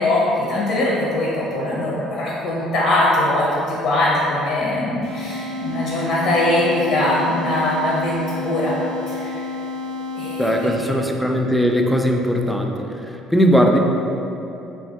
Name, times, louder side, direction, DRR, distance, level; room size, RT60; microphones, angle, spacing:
voice 1, 0.0-8.7 9.1-9.4 10.1-10.4 10.8-10.9, left 1 dB, 75° left, -5 dB, 0.5 m, -21 dB
sound 1, 5.0-11.0, left 3 dB, 90° right, 0.6 m, -30 dB
voice 2, 10.4-12.7 13.1-13.8, equal, 5° left, 2 dB, 0.3 m, -18 dB
2.6 x 2.3 x 3.5 m, 2.9 s
supercardioid pair, 80°, 0 cm